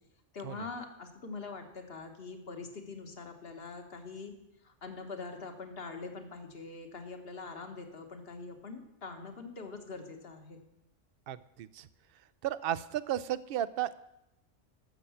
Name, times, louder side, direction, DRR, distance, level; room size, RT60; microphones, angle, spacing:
voice 1, 0.3-4.3 4.6-10.6, left 4 dB, 55° left, 5 dB, 1.6 m, -43 dB
voice 2, 11.3-11.9 12.4-14.0, right 12 dB, 60° right, 16 dB, 0.7 m, -34 dB
12.5 x 6.9 x 7.1 m, 0.87 s
omnidirectional pair, 1.2 m